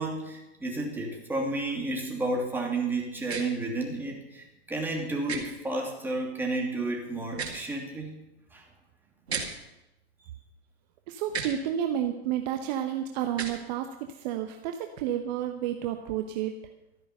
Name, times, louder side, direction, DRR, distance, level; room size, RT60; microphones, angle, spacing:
voice 1, 0.0-8.2 8.5-8.6, right 2 dB, 5° right, 0 dB, 2.8 m, -31 dB
sound 1, 3.3-3.4 5.3-5.4 7.3-7.6 9.3-9.5 11.3-11.5 13.3-13.6, right 5 dB, 75° right, 2.3 m, -33 dB
voice 2, 11.1-16.5, right 10 dB, 40° right, 6 dB, 1.0 m, -31 dB
13.5 x 10.0 x 6.7 m, 0.95 s
figure-of-eight pair, 110°, 32 cm